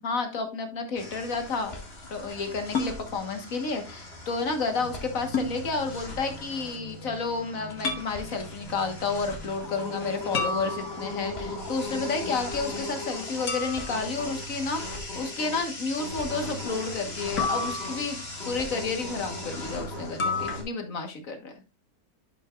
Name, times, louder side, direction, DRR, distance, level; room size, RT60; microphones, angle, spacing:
voice 1, 0.0-1.7 2.1-21.5, left 4 dB, 65° left, 6 dB, 1.8 m, -31 dB
sound 1, 1.0-20.6, left 1 dB, 45° left, 2.2 m, -38 dB
sound 2, 2.7-3.0 5.3-5.6 7.8-8.1 10.3-11.3 13.5-14.1 17.4-18.3 20.2-20.6, left 4 dB, 80° left, 1.8 m, -30 dB
11.0 x 5.9 x 2.4 m, 0.31 s
omnidirectional pair, 1.6 m